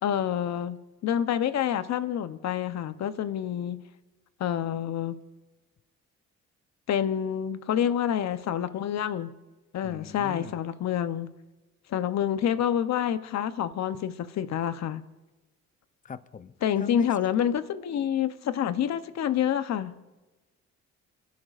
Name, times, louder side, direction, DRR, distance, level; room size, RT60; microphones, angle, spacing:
voice 1, 0.0-3.8 4.4-5.2 6.9-9.3 9.7-11.3 11.9-15.0 16.6-19.9, left 9 dB, 65° left, 12 dB, 0.9 m, -28 dB
voice 2, 9.8-10.6 16.0-17.1, left 6 dB, 25° left, 14 dB, 0.6 m, -39 dB
26.5 x 11.5 x 2.5 m, 1.1 s
cardioid pair, 90°, 30 cm